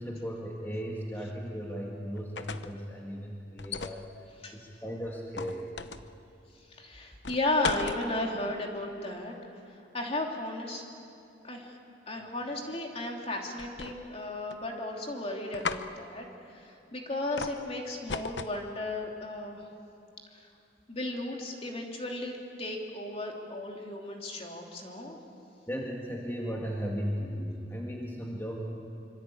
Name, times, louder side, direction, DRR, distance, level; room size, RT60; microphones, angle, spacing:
voice 1, 0.0-4.0 4.5-5.7 25.7-28.6, equal, 10° left, -2 dB, 2.1 m, -36 dB
sound 1, 2.2-2.8 3.6-4.0 5.4-6.1 7.2-8.0 13.6-14.2 14.5-15.0 15.5-15.9 17.4-17.6 18.1-18.6, left 5 dB, 70° left, 0.9 m, -36 dB
voice 2, 6.7-9.3 9.7-10.8 11.4-11.8 12.1-19.6 20.3-20.5 20.9-25.2, left 2 dB, 35° left, 1 dB, 3.0 m, -35 dB
25.5 x 24.5 x 8.7 m, 2.6 s
head